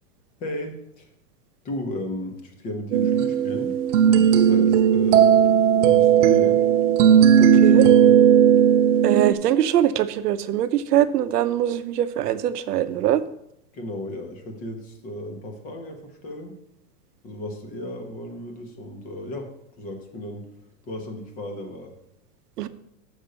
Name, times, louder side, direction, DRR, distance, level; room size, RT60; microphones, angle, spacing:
voice 1, 0.4-1.1 1.6-6.6 7.5-8.2 13.7-16.5 17.2-19.5 19.8-20.5 20.9-21.9, left 1 dB, 20° left, 4 dB, 0.9 m, -35 dB
sound 1, 2.9-9.3, right 9 dB, 55° right, 0.6 m, -16 dB
voice 2, 7.4-7.8 9.0-13.2 22.6-22.7, right 12 dB, 85° right, 12 dB, 0.9 m, -22 dB
6.5 x 5.3 x 6.7 m, 0.77 s
supercardioid pair, 165°, 46 cm